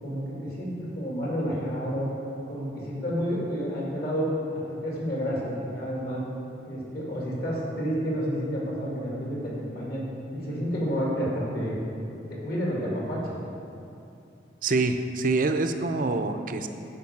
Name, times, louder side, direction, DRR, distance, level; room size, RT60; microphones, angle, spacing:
voice 1, 0.0-2.1 2.5-6.2 6.6-10.0 10.3-11.8 12.2-13.4, equal, 55° left, -4 dB, 2.4 m, -30 dB
voice 2, 14.6-16.7, right 3 dB, 45° right, 7 dB, 0.5 m, -25 dB
10.5 x 5.3 x 7.1 m, 2.6 s
head